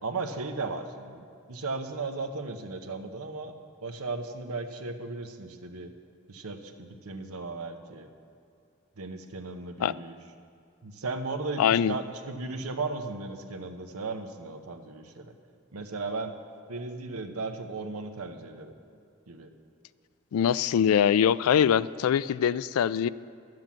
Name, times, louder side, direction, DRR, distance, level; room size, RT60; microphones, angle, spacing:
voice 1, 0.0-3.5 3.8-5.9 6.3-8.1 9.0-10.2 10.8-15.3 15.7-16.3 16.7-18.7 19.3-19.5, right 3 dB, 85° right, 6 dB, 0.9 m, -36 dB
voice 2, 11.6-11.9 20.3-23.1, left 8 dB, 80° left, 19 dB, 0.3 m, -23 dB
12.0 x 7.8 x 7.3 m, 2.4 s
head